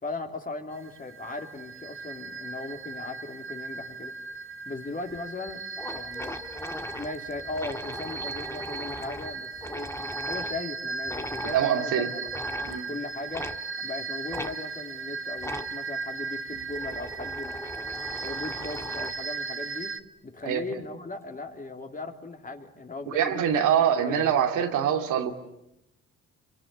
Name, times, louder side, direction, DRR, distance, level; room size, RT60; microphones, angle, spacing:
voice 1, 0.0-4.1 4.7-5.6 5.9-6.4 7.0-9.9 10.3-13.5 13.8-17.6 18.2-19.9 20.2-24.5, left 3 dB, 25° left, 4 dB, 3.3 m, -38 dB
sound 1, 0.7-20.0, right 4 dB, 45° right, 1.2 m, -37 dB
sound 2, 5.1-5.2 5.5-5.6 5.8-10.6 11.1-11.6 12.3-12.8 13.3-13.6 14.3-14.5 15.4-15.7 16.5-19.3, left 1 dB, 10° left, 1.8 m, -38 dB
voice 2, 11.4-12.1 12.6-12.9 20.4-20.6 23.1-25.3, right 9 dB, 85° right, 5 dB, 2.7 m, -24 dB
28.0 x 24.0 x 8.5 m, 0.83 s
cardioid pair, 90°, 30 cm